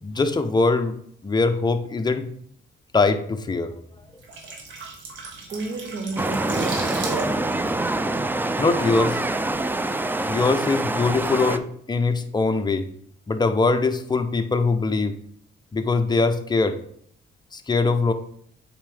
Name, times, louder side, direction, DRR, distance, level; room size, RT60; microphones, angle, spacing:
voice 1, 0.0-0.9 1.2-2.3 2.9-3.7 8.6-9.2 10.3-12.9 13.3-15.2 15.7-16.8 17.5-18.1, left 3 dB, 20° left, 0.7 m, -22 dB
sound 1, 4.0-8.9 9.2-9.4, right 3 dB, 70° right, 1.6 m, -36 dB
voice 2, 5.5-7.6, right 3 dB, 45° right, 0.7 m, -32 dB
sound 2, 6.2-11.6, right 2 dB, 10° right, 0.4 m, -25 dB
7.3 x 4.5 x 3.4 m
cardioid pair, 90°, 20 cm